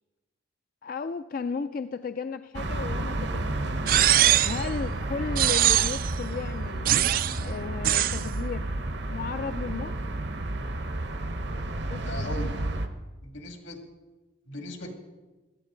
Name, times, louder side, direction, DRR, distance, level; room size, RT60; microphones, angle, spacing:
voice 1, 0.8-4.0 4.4-7.0 7.4-8.7 9.1-10.0 11.8-12.2, left 5 dB, 45° left, 10 dB, 0.3 m, -35 dB
sound 1, 2.5-12.9, right 2 dB, 65° right, 0.9 m, -31 dB
sound 2, 3.9-4.7 5.4-6.1 6.9-7.4 7.8-8.2, right 13 dB, 45° right, 0.3 m, -22 dB
voice 2, 12.1-12.5 13.2-13.8 14.5-14.9, left 1 dB, 80° left, 3 dB, 2.3 m, -38 dB
16.5 x 13.0 x 3.8 m, 1.2 s
head